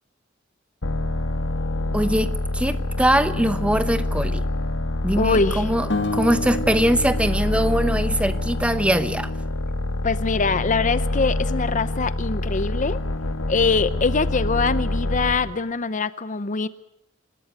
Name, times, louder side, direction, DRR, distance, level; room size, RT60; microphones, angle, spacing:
sound 1, 0.8-15.5, left 2 dB, 90° left, 1.7 m, -26 dB
voice 1, 1.9-4.4 5.0-9.3, right 1 dB, 5° right, 0.9 m, -22 dB
voice 2, 5.2-5.7 10.0-13.0 13.5-16.7, left 4 dB, 40° left, 0.7 m, -23 dB
sound 2, 5.9-9.1, left 2 dB, 60° left, 1.9 m, -31 dB
26.0 x 13.5 x 9.2 m
head